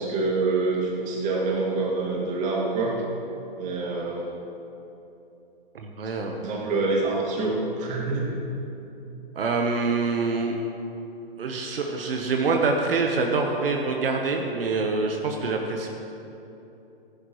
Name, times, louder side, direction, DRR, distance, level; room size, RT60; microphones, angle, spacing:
voice 1, 0.0-3.0 3.6-4.3 6.4-8.4, right 3 dB, 25° right, -3 dB, 2.4 m, -26 dB
voice 2, 5.7-6.4 9.3-10.6 11.4-15.9, right 4 dB, 70° right, 2 dB, 1.2 m, -25 dB
15.5 x 10.5 x 3.1 m, 2.9 s
hypercardioid pair, 125°, 30 cm